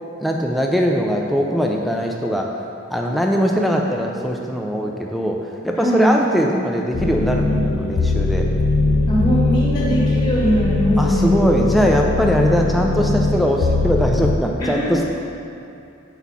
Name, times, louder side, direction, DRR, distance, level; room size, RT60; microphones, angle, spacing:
voice 1, 0.2-2.5 2.9-5.4 5.6-8.5 11.0-15.0, equal, ahead, 0 dB, 0.3 m, -20 dB
voice 2, 5.7-6.1 9.1-11.4 14.6-15.0, equal, 20° left, -7 dB, 1.3 m, -20 dB
sound 1, 6.9-14.4, left 3 dB, 85° left, 0.4 m, -20 dB
4.6 x 4.1 x 5.5 m, 2.6 s
head